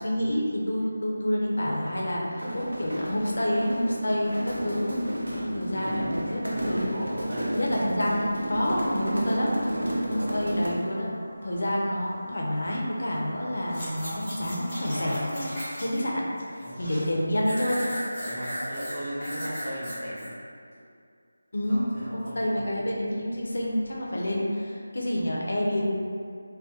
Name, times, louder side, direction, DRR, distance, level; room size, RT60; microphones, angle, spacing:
voice 1, 0.0-7.0 7.5-9.5 10.1-11.1 11.4-17.9 21.5-21.9 22.1-25.9, left 1 dB, 65° left, -3 dB, 0.4 m, -28 dB
sound 1, 2.2-10.9, equal, 80° right, 0.5 m, -31 dB
voice 2, 5.7-6.2 6.5-7.6 10.1-10.4 16.6-16.8 18.2-20.3 21.6-22.8, equal, 25° right, -12 dB, 0.8 m, -37 dB
sound 2, 7.4-15.7, equal, 10° right, 0.4 m, -49 dB
sound 3, 13.7-16.1 16.4-17.1 17.5-20.3 20.8-20.9, equal, 5° left, 1.0 m, -36 dB
2.2 x 2.1 x 2.7 m, 2.3 s
figure-of-eight pair, 165°, 0 cm